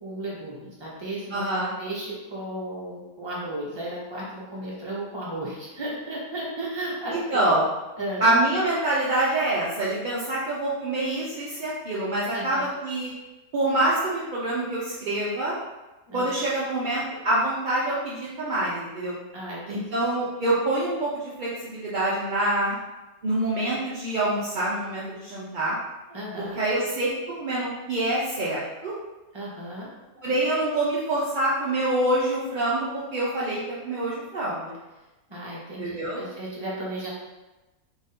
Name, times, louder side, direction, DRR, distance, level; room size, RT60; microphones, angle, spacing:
voice 1, 0.0-1.4 1.8-7.5 8.0-8.3 12.3-12.6 16.1-16.4 19.3-19.8 26.1-26.6 29.3-29.9 35.3-37.1, right 1 dB, 25° right, -6 dB, 0.7 m, -34 dB
voice 2, 1.3-1.7 7.3-7.7 8.2-13.1 13.5-15.6 16.1-19.1 19.7-22.8 23.2-25.7 26.4-27.1 27.4-28.9 30.2-34.7 35.8-36.2, right 1 dB, 60° right, -7 dB, 0.5 m, -26 dB
2.9 x 2.6 x 4.0 m, 1.1 s
omnidirectional pair, 1.6 m